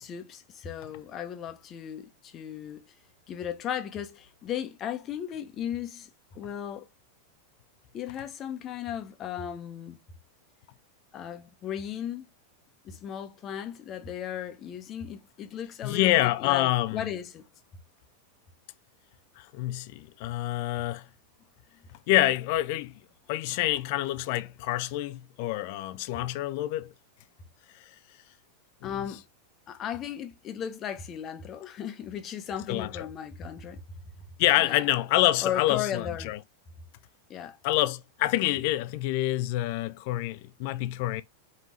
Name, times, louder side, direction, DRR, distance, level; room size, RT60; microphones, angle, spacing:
voice 1, 0.0-2.8 3.3-6.1 6.3-6.9 7.9-10.0 11.1-12.3 12.8-17.5 28.8-29.2 29.7-33.8 34.6-34.8 35.4-36.4 37.3-37.6, left 9 dB, 30° left, 0.9 m, -36 dB
voice 2, 15.8-17.1 19.4-21.0 22.1-22.9 23.3-26.9 28.8-28.9 32.7-33.1 34.4-36.4 37.6-41.2, left 16 dB, 45° left, 0.4 m, -27 dB
5.2 x 2.7 x 3.2 m
figure-of-eight pair, 90°, 0 cm